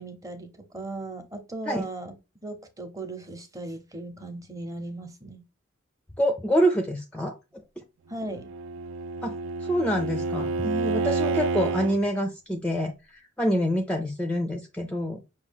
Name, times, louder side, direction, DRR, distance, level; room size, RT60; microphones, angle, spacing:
voice 1, 0.0-2.1 2.4-5.4 8.1-8.5, right 2 dB, 15° right, 6 dB, 0.8 m, -37 dB
voice 2, 6.2-7.4 7.8-7.9 9.2-15.2, equal, 5° left, 5 dB, 0.4 m, -26 dB
Bowed string instrument, 8.3-12.0, right 3 dB, 70° right, 0.3 m, -29 dB
6.0 x 2.4 x 3.5 m, 0.27 s
head